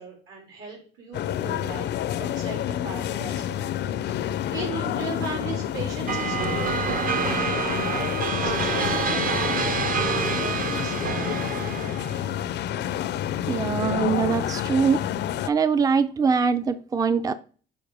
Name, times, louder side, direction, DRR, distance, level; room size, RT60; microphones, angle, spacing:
voice 1, 0.0-4.2 4.5-7.1 7.7-11.4, right 3 dB, 75° right, 3.9 m, -38 dB
sound 1, 1.1-15.5, left 10 dB, 55° left, 0.4 m, -28 dB
sound 2, 6.1-12.3, right 6 dB, 45° right, 0.8 m, -27 dB
voice 2, 13.5-15.0 15.5-17.3, right 5 dB, 15° right, 0.4 m, -23 dB
7.0 x 5.5 x 4.8 m
cardioid pair, 115°, 21 cm